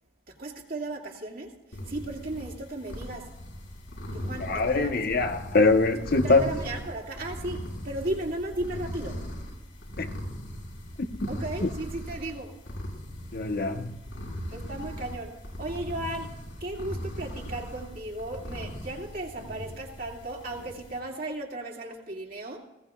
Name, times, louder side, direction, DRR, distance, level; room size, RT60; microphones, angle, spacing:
voice 1, 0.4-1.5 1.9-3.3 4.1-5.2 6.2-9.2 11.3-12.5 14.5-15.3 15.6-16.3 16.6-22.6, right 1 dB, 50° right, 2.4 m, -35 dB
sound 1, 1.7-21.0, equal, 80° left, 6.2 m, -39 dB
voice 2, 4.4-6.5 10.0-10.1 11.6-11.7 13.3-13.9, left 3 dB, 55° left, 1.0 m, -23 dB
20.0 x 17.0 x 2.4 m
head